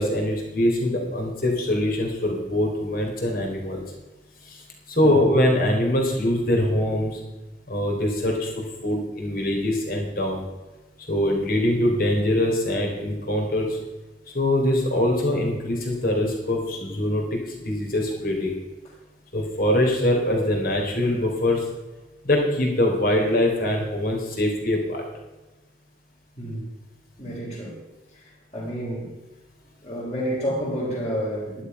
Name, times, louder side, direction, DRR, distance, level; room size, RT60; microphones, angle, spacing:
voice 1, 0.0-3.8 4.4-4.6 4.9-7.2 7.7-10.5 11.1-13.8 14.3-18.6 19.3-21.7 22.2-25.0, left 1 dB, 50° left, 1 dB, 3.6 m, -23 dB
voice 2, 26.4-26.7 27.2-27.8 28.1-28.2 28.5-29.1 29.8-31.6, equal, 35° left, -9 dB, 3.7 m, -29 dB
11.5 x 11.5 x 5.4 m, 1.1 s
head